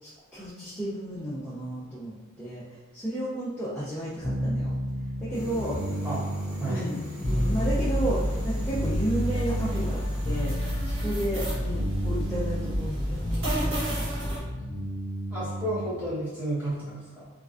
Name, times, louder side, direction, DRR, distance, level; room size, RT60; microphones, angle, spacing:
voice 1, 0.0-4.8 5.2-5.8 6.6-7.0 7.3-10.5 10.8-14.4, right 1 dB, 5° left, -10 dB, 0.3 m, -33 dB
sound 1, 4.2-16.1, equal, 30° left, 0.7 m, -33 dB
sound 2, 5.3-10.4, left 1 dB, 90° right, 1.2 m, -40 dB
sound 3, 7.2-14.4, equal, 65° right, 0.8 m, -29 dB
voice 2, 15.3-17.3, right 1 dB, 10° right, -11 dB, 0.9 m, -31 dB
2.3 x 2.2 x 2.4 m, 1.2 s
head